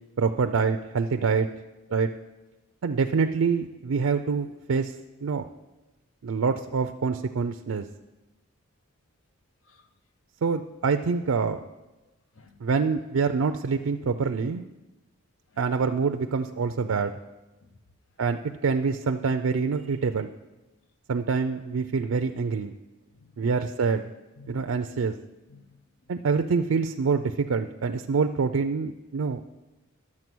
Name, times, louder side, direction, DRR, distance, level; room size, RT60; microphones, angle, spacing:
voice 1, 0.2-1.5 1.9-2.1 2.8-4.9 5.2-5.5 6.2-7.9 10.4-11.6 12.6-14.7 15.6-17.1 18.2-20.3 21.1-22.7 23.4-24.1 24.5-25.1 26.1-29.4, right 5 dB, 75° right, 7 dB, 0.4 m, -26 dB
voice 2, 12.0-12.6 15.5-15.6 17.6-17.8 23.1-23.6 24.4-24.7 25.5-26.1, left 4 dB, 65° left, 9 dB, 0.7 m, -55 dB
11.0 x 7.4 x 6.1 m, 1.0 s
head